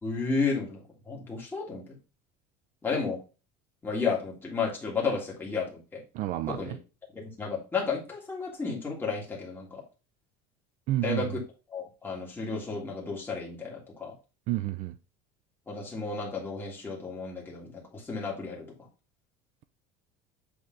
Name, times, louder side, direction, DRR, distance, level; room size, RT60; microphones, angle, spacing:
voice 1, 0.0-2.0 2.8-3.2 3.8-6.0 6.5-6.8 7.1-9.8 11.0-11.4 11.7-14.1 15.7-18.7, left 4 dB, 10° left, 1.9 m, -32 dB
voice 2, 6.1-6.8 10.9-11.3 14.5-15.0, right 14 dB, 45° right, 0.4 m, -30 dB
8.2 x 3.3 x 3.8 m
cardioid pair, 170°, 19 cm